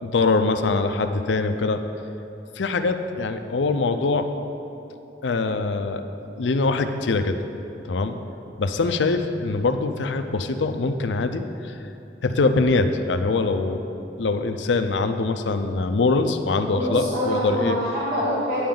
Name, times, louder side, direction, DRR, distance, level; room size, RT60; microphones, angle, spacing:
voice 1, 0.0-1.8 2.6-4.3 5.2-6.1 6.4-7.4 7.9-8.2 8.6-11.8 12.2-13.8 14.2-17.8, left 3 dB, 90° left, 8 dB, 0.5 m, -23 dB
voice 2, 16.7-18.7, equal, 50° right, -9 dB, 1.4 m, -25 dB
8.7 x 8.5 x 3.8 m, 2.9 s
head